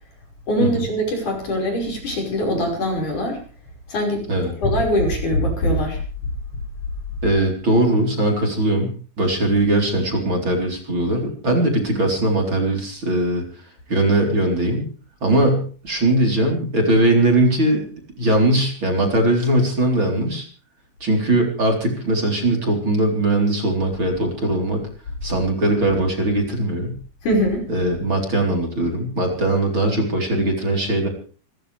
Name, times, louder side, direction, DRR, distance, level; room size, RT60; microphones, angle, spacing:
voice 1, 0.5-3.4 3.9-4.3 4.6-6.0 27.2-27.7, equal, 40° left, 1 dB, 6.6 m, -22 dB
voice 2, 7.2-8.9 9.2-13.4 13.9-14.9 15.2-17.9 18.2-20.4 21.0-24.8 25.2-27.0 27.7-31.1, right 1 dB, 25° right, 2 dB, 4.1 m, -20 dB
28.0 x 14.5 x 3.5 m, 0.39 s
omnidirectional pair, 5.8 m